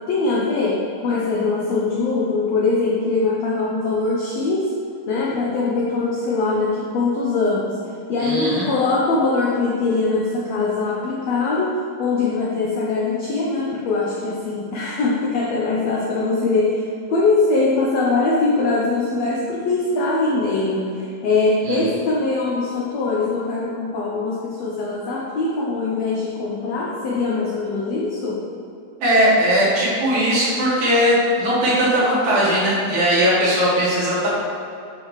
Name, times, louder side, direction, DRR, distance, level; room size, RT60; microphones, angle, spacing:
voice 1, 0.1-4.7 5.1-7.8 8.1-28.4, left 3 dB, 80° left, -4 dB, 1.5 m, -22 dB
voice 2, 8.2-8.7 21.6-21.8 29.0-34.3, equal, 60° right, -8 dB, 3.1 m, -18 dB
7.6 x 6.7 x 3.2 m, 2.5 s
omnidirectional pair, 4.0 m